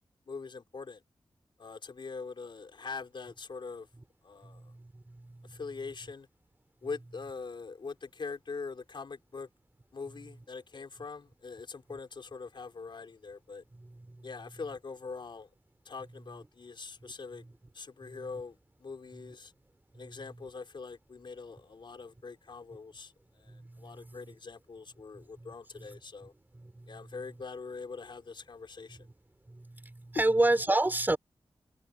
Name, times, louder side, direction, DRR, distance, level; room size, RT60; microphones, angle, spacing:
voice 1, 0.3-1.0 1.6-3.9 4.2-4.7 5.5-6.3 6.8-9.5 9.9-13.6 14.2-15.5 15.9-17.4 17.7-19.5 19.9-26.3 26.9-29.1, left 4 dB, 60° left, 4.0 m, -43 dB
voice 2, 4.4-5.6 14.1-14.3 18.0-18.2 19.9-20.0 23.5-24.2 25.1-25.5 25.8-25.9 26.6-27.1 29.5-31.2, right 2 dB, 20° right, 5.4 m, -31 dB
wide cardioid pair, 115°, 9 cm